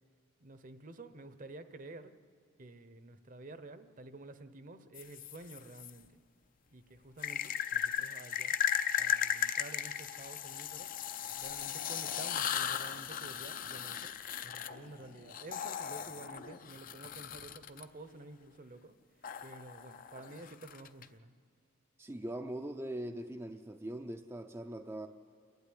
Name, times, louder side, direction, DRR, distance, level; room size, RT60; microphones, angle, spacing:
voice 1, 0.4-2.1 2.6-6.2 6.7-8.6 9.0-10.9 11.4-14.1 14.4-18.9 19.4-21.3, right 2 dB, 40° right, 11 dB, 0.8 m, -51 dB
sound 1, 4.9-5.9 7.2-17.8 19.2-21.0, left 9 dB, 45° left, 0.6 m, -36 dB
voice 2, 22.0-25.1, right 1 dB, 15° right, 4 dB, 0.5 m, -41 dB
28.0 x 12.0 x 9.9 m, 2.4 s
head